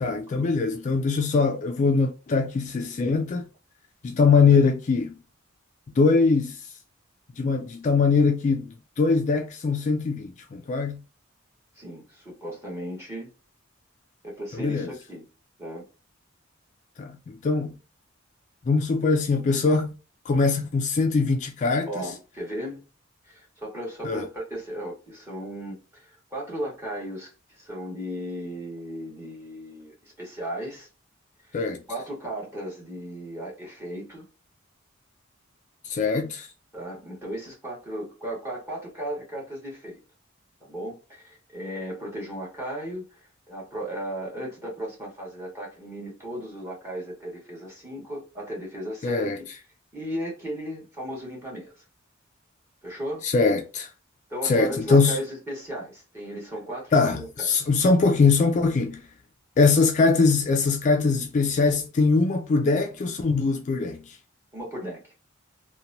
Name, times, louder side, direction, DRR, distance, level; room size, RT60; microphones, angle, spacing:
voice 1, 0.0-3.5 4.0-5.1 6.0-6.6 7.4-8.7 9.0-11.0 14.6-14.9 17.0-17.8 18.7-20.0 20.3-22.1 24.0-24.2 31.5-31.8 35.8-36.5 49.0-49.4 53.2-53.9 54.4-55.2 56.9-59.0 59.6-64.2, left 4 dB, 35° left, 0.3 m, -22 dB
voice 2, 11.7-13.3 14.2-15.3 15.6-15.8 21.9-22.8 23.2-30.9 31.4-31.6 31.9-34.2 36.7-40.0 40.6-49.3 49.9-51.8 52.8-53.2 54.3-57.7 64.5-65.1, right 1 dB, 15° right, 1.2 m, -36 dB
2.9 x 2.2 x 2.5 m
head